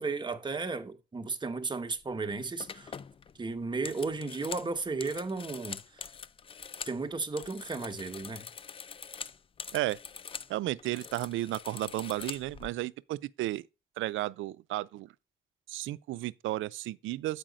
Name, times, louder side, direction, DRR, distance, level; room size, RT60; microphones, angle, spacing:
voice 1, 0.0-2.9 3.4-6.0 6.8-8.5, right 4 dB, 20° right, 1.0 m, -34 dB
sound 1, 2.0-2.2 2.6-7.0 7.3-10.5 10.8-12.7, left 6 dB, 25° left, 0.3 m, -44 dB
voice 2, 10.5-13.6 14.0-15.1 15.7-17.4, right 16 dB, 80° right, 0.4 m, -33 dB
7.5 x 4.9 x 5.1 m
cardioid pair, 90°, 20 cm